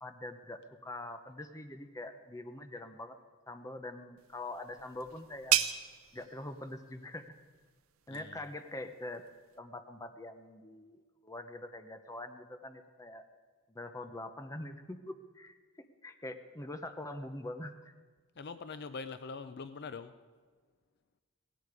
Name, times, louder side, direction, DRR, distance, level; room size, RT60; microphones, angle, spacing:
voice 1, 0.0-3.2 3.5-5.6 6.1-7.3 8.1-9.2 9.6-13.3 13.7-15.6 16.0-17.9, left 2 dB, 15° left, 8 dB, 0.7 m, -44 dB
sound 1, 4.2-9.6, right 11 dB, 70° right, 0.7 m, -37 dB
voice 2, 8.1-8.5 18.4-20.1, left 4 dB, 50° left, 11 dB, 0.5 m, -43 dB
17.0 x 16.0 x 4.9 m, 1.5 s
head